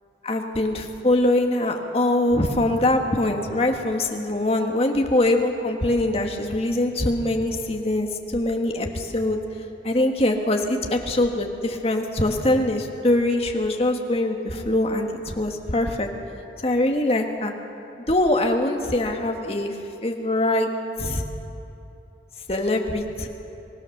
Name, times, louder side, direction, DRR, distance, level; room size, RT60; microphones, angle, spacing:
voice 1, 0.2-9.4 9.8-16.1 16.6-17.5 18.1-19.7 20.0-20.7 21.0-21.2 22.5-23.3, left 1 dB, 35° left, 3 dB, 1.5 m, -23 dB
24.0 x 16.5 x 6.6 m, 2.9 s
head